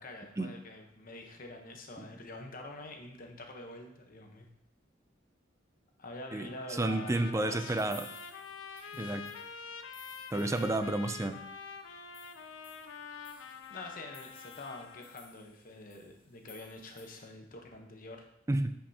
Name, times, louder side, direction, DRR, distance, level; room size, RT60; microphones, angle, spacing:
voice 1, 0.0-4.5 6.0-7.8 8.7-9.2 13.1-18.3, left 2 dB, 45° left, 3 dB, 1.0 m, -46 dB
Trumpet, 6.3-15.2, left 5 dB, 85° left, 0.6 m, -46 dB
voice 2, 6.3-8.1 9.0-9.3 10.3-11.4 18.5-18.7, right 2 dB, 15° right, 9 dB, 0.4 m, -31 dB
sound 1, 7.8-11.3 11.6-11.7 12.0-17.2, left 4 dB, 30° left, 1.2 m, -57 dB
8.7 x 5.5 x 2.8 m, 0.76 s
head